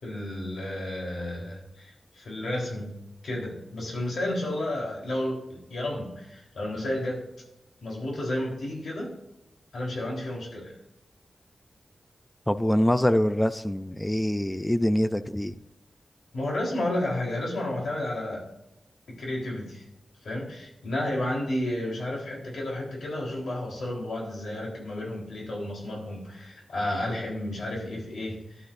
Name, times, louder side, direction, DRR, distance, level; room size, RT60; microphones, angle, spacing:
voice 1, 0.0-2.9 3.2-7.3 7.8-9.1 9.7-10.7 16.3-18.5 19.1-19.8 20.2-28.7, left 1 dB, 85° left, -2 dB, 4.0 m, -32 dB
voice 2, 12.5-15.5, left 1 dB, 15° left, 12 dB, 0.6 m, -24 dB
15.5 x 11.5 x 2.7 m, 0.90 s
wide cardioid pair, 85°, 0 cm